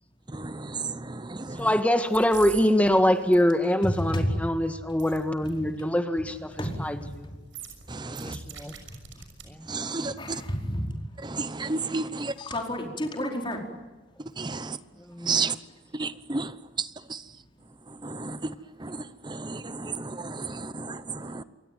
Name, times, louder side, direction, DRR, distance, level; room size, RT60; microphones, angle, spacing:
voice 1, 0.3-1.7 7.9-8.3 9.7-10.4 11.2-12.3 14.4-14.8 15.3-15.5 15.9-16.5 16.8-17.2 18.0-18.4 18.8-19.0 19.2-21.4, right 4 dB, 25° right, 14 dB, 0.8 m, -32 dB
voice 2, 1.6-7.3 8.1-8.7 9.5-9.7 15.1-15.5 21.4-21.5, left 1 dB, 10° left, 7 dB, 1.5 m, -24 dB
sound 1, 1.6-1.8 2.1-2.6 2.9-3.4 5.0-5.2 5.4-5.5 6.5-6.8 7.0-7.2 7.5-9.4 9.8-9.9, right 8 dB, 90° right, 6.3 m, -43 dB
voice 3, 10.2-10.9 12.4-13.6, left 1 dB, 25° left, 1 dB, 4.7 m, -30 dB
27.5 x 23.5 x 9.3 m, 1.2 s
head